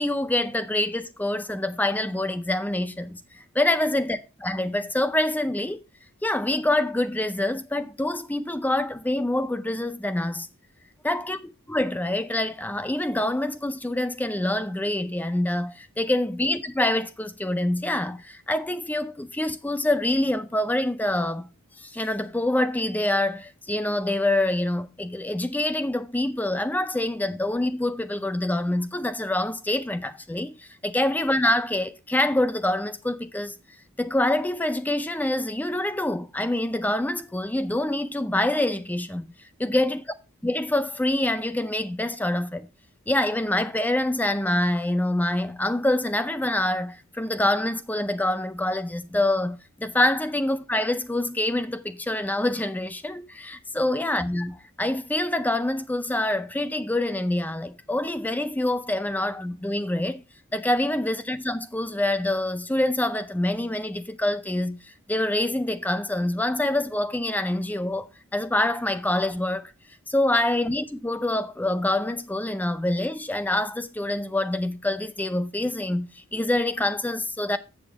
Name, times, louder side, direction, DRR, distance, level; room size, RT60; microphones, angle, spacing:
voice 1, 0.0-3.2 3.5-5.8 6.2-10.5 11.0-11.4 11.7-21.5 21.8-33.5 34.0-39.3 39.6-40.0 40.4-42.7 43.1-60.2 60.5-64.8 65.1-69.7 70.1-77.6, left 1 dB, 10° left, 0.5 m, -26 dB
7.3 x 7.1 x 4.7 m
head